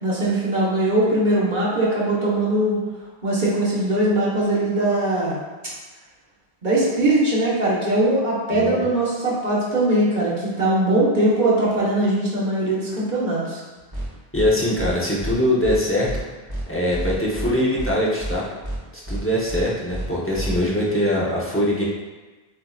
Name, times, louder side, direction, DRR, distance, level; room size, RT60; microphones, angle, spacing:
voice 1, 0.0-2.8 3.2-5.4 6.6-13.6, right 1 dB, 50° right, -6 dB, 1.3 m, -21 dB
sound 1, 13.9-14.1 14.3-14.5 14.8-14.9 15.2-15.3 15.6-15.8 16.1-16.2 16.5-16.6 16.9-17.5 17.8-17.9 18.2-18.3 18.6-18.8 19.1-19.2 19.5-19.6 19.9-20.1 20.3-20.6, right 1 dB, 25° right, 0.9 m, -28 dB
voice 2, 14.3-16.1 16.7-18.4 18.9-21.8, left 1 dB, 15° left, -5 dB, 0.7 m, -22 dB
7.6 x 2.8 x 2.4 m, 1.2 s
omnidirectional pair, 1.0 m